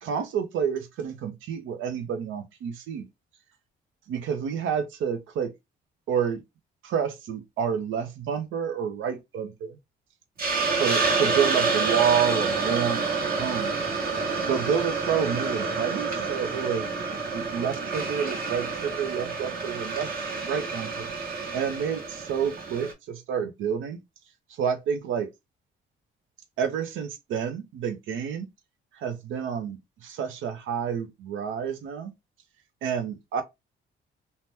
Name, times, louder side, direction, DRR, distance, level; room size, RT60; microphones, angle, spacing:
voice 1, 0.0-3.1 4.1-5.5 6.1-6.4 6.8-9.8 10.7-13.0 13.3-13.7 14.5-16.9 17.3-20.1 20.4-21.1 21.5-24.0 24.6-25.3 26.6-28.5 28.9-32.1 32.8-33.4, right 7 dB, 85° right, 0.7 m, -29 dB
Hiss, 10.4-22.9, right 4 dB, 50° right, 1.2 m, -28 dB
2.8 x 2.1 x 3.3 m
cardioid pair, 90°, 20 cm